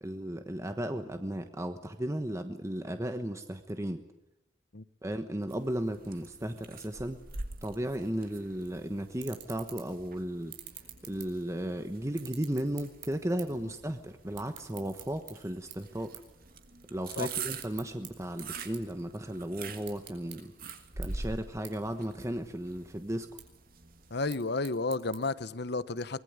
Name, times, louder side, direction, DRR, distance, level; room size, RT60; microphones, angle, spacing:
voice 1, 0.0-4.0 5.0-7.2 7.6-10.5 11.0-16.2 16.9-20.5 21.0-23.3, right 1 dB, 15° right, 1.2 m, -35 dB
sound 1, 5.5-24.3, right 4 dB, 50° right, 2.2 m, -45 dB
sound 2, 8.6-8.7 9.1-10.0 10.4-11.7 12.1-13.6 13.9-15.3 15.7-15.9 16.1-16.3 16.7-18.1 18.4-19.4 19.7-20.4 20.7-20.8 21.0-21.1 21.6-21.7 22.1-22.7 23.1-23.4 24.1-25.2, right 12 dB, 85° right, 5.3 m, -47 dB
voice 2, 24.1-26.2, left 3 dB, 60° left, 1.0 m, -32 dB
24.0 x 21.0 x 9.6 m
head